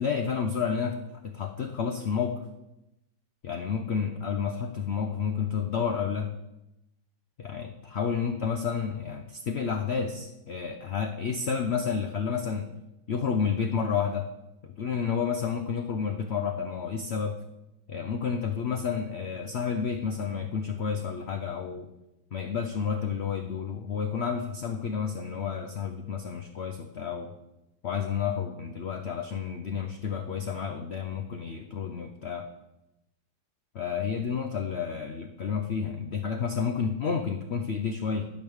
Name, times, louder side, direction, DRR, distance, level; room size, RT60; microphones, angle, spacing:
voice 1, 0.0-2.4 3.4-6.3 7.4-12.7 13.1-14.3 14.6-17.4 17.9-21.9 22.3-27.3 27.8-32.5 33.7-38.3, left 6 dB, 85° left, 6 dB, 0.5 m, -30 dB
11.0 x 5.3 x 6.4 m, 0.92 s
omnidirectional pair, 2.0 m